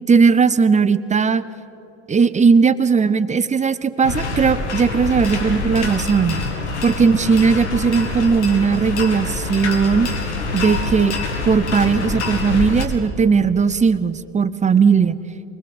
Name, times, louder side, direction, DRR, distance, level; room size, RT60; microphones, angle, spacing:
voice 1, 0.1-1.4 2.1-6.4 6.8-10.1 10.5-11.1 11.4-15.2, right 5 dB, 20° right, 15 dB, 0.9 m, -17 dB
sound 1, 4.0-12.9, left 3 dB, 90° left, 2.3 m, -25 dB
24.0 x 20.0 x 8.0 m, 3.0 s
hypercardioid pair, 70°, 33 cm